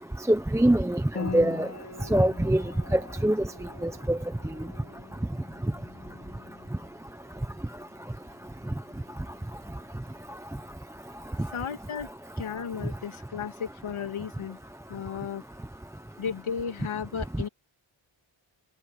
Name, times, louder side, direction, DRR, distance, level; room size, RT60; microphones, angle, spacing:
voice 1, 0.3-1.7 2.1-2.6 2.9-3.4 3.8-4.2, right 1 dB, 5° right, 0.8 m, -23 dB
Piano, 1.2-10.5, left 4 dB, 30° left, 3.5 m, -43 dB
voice 2, 11.5-12.1 12.4-14.6 14.9-15.4 16.2-17.5, left 7 dB, 90° left, 2.5 m, -34 dB
wide cardioid pair, 170°, 47 cm